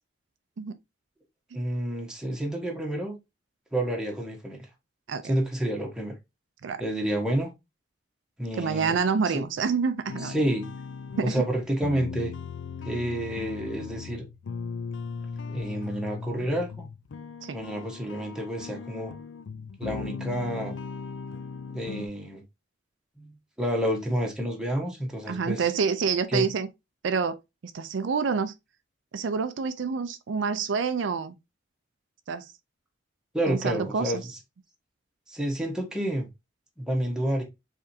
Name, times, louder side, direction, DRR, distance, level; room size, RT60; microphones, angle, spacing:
voice 1, 1.5-3.1 3.7-4.7 5.2-6.1 6.8-7.5 8.4-8.9 9.3-9.4 10.2-10.7 11.2-12.3 12.8-14.2 15.4-16.9 17.5-19.1 19.8-20.8 21.7-22.4 23.2-25.7 26.3-26.5 33.3-34.4 35.3-36.3 36.8-37.4, right 1 dB, 5° right, 1.2 m, -29 dB
voice 2, 8.5-10.3 11.2-11.4 17.4-17.6 25.3-26.7 27.0-27.4 27.7-28.6 29.1-31.3 32.3-32.5 33.5-34.1, right 5 dB, 80° right, 0.4 m, -27 dB
sound 1, 10.1-22.1, left 5 dB, 75° left, 0.4 m, -38 dB
4.7 x 3.5 x 2.7 m
head